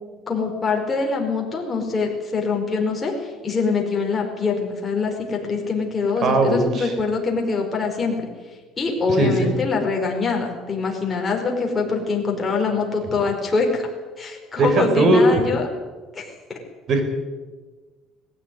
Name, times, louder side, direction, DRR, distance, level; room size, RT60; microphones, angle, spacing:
voice 1, 0.3-8.2 8.8-13.9 14.2-15.7 16.1-16.3, left 4 dB, 20° left, 1 dB, 5.0 m, -24 dB
voice 2, 6.2-6.9 9.2-9.6 14.6-15.5 16.9-17.0, right 2 dB, 45° right, 6 dB, 4.8 m, -18 dB
19.5 x 15.5 x 9.5 m, 1.3 s
cardioid pair, 135°, 0 cm